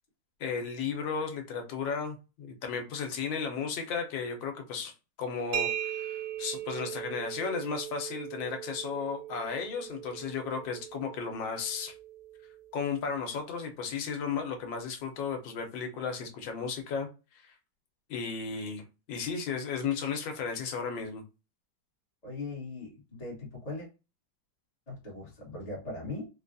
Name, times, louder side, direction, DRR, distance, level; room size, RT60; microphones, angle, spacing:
voice 1, 0.4-4.9 5.2-11.9 12.7-17.1 17.3-17.5 18.1-18.8 19.1-21.2, left 5 dB, 85° left, 4 dB, 1.5 m, -34 dB
sound 1, 5.5-13.1, right 11 dB, 75° right, 1.2 m, -39 dB
voice 2, 22.2-23.9 24.9-26.3, left 2 dB, 25° left, -4 dB, 1.1 m, -39 dB
4.0 x 2.3 x 2.5 m, 0.30 s
omnidirectional pair, 2.0 m